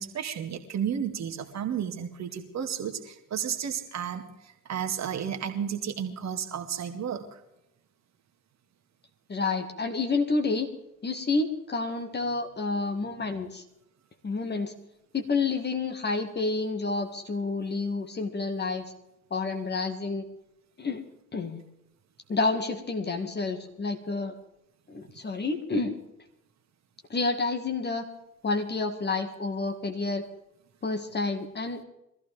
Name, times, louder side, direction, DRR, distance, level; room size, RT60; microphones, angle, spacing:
voice 1, 0.0-7.4, right 8 dB, 40° right, 6 dB, 1.9 m, -32 dB
voice 2, 9.3-10.7 11.0-13.6 14.2-14.7 15.1-18.9 19.3-20.2 20.8-21.0 21.3-21.6 22.3-24.3 24.9-25.9 27.1-28.1 28.4-30.2 30.8-31.8, left 3 dB, 25° left, 5 dB, 1.9 m, -29 dB
23.0 x 14.5 x 3.5 m, 0.83 s
figure-of-eight pair, 60°, 43 cm